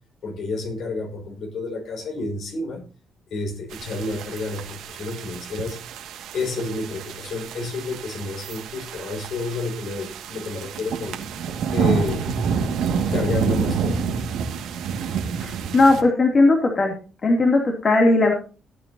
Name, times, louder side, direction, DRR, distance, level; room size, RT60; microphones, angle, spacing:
voice 1, 0.2-2.8 3.3-5.8 6.3-11.2 11.7-12.3 13.1-14.4, left 2 dB, 65° left, 3 dB, 5.6 m, -30 dB
sound 1, 3.7-16.0, right 6 dB, 85° right, 2.0 m, -28 dB
voice 2, 15.4-16.9 17.2-18.3, left 2 dB, 40° left, 1 dB, 2.9 m, -18 dB
17.5 x 9.0 x 2.8 m, 0.36 s
cardioid pair, 90°, 0 cm